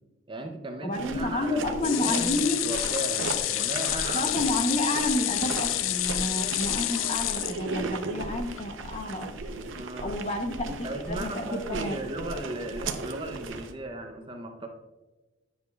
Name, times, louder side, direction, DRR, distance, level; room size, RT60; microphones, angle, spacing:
voice 1, 0.3-4.4 9.7-10.2 10.8-14.7, right 1 dB, 25° right, 4 dB, 0.6 m, -36 dB
voice 2, 0.8-2.6 4.1-9.3 10.0-10.8 11.1-12.0, left 1 dB, 35° left, 5 dB, 0.8 m, -30 dB
sound 1, 0.9-13.7, right 3 dB, 80° right, 0.6 m, -36 dB
sound 2, 1.8-8.1 8.6-8.7 9.0-9.1, left 14 dB, 80° left, 0.3 m, -29 dB
9.8 x 7.1 x 2.3 m, 1.2 s
head